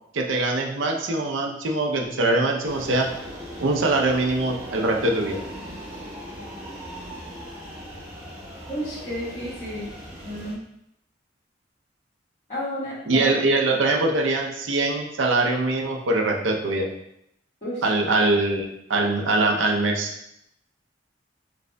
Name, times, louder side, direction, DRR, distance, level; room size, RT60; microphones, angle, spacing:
voice 1, 0.1-3.1 3.6-5.4 13.1-16.9 17.8-20.1, right 2 dB, 80° right, 1 dB, 0.6 m, -23 dB
sound 1, 2.6-10.5, equal, 15° right, 1.0 m, -38 dB
voice 2, 8.7-9.9 10.2-10.6 12.5-13.4 17.6-17.8, equal, 40° left, -14 dB, 1.5 m, -31 dB
5.1 x 3.3 x 2.2 m, 0.78 s
head